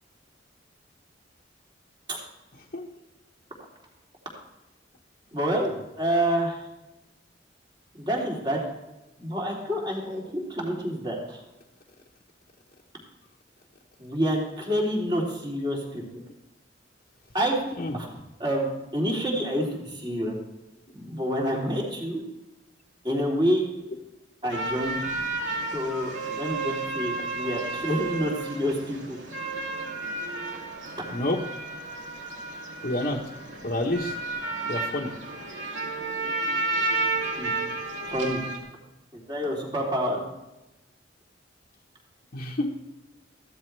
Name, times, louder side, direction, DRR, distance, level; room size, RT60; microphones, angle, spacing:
voice 1, 5.3-6.6 8.0-8.6 9.2-11.4 14.0-16.0 17.3-17.6 17.9-18.1 18.4-18.6 18.9-20.3 20.9-22.2 23.0-23.6 24.4-25.1 25.7-29.2 37.4-37.5 38.1-38.4 39.1-40.2, equal, 25° right, -2 dB, 3.2 m, -28 dB
sound 1, 24.5-38.6, right 2 dB, 85° right, 2.6 m, -32 dB
voice 2, 32.8-33.2 33.6-34.1 34.7-35.1 42.3-42.9, left 1 dB, 45° left, -3 dB, 1.2 m, -28 dB
15.0 x 13.5 x 3.4 m, 0.98 s
head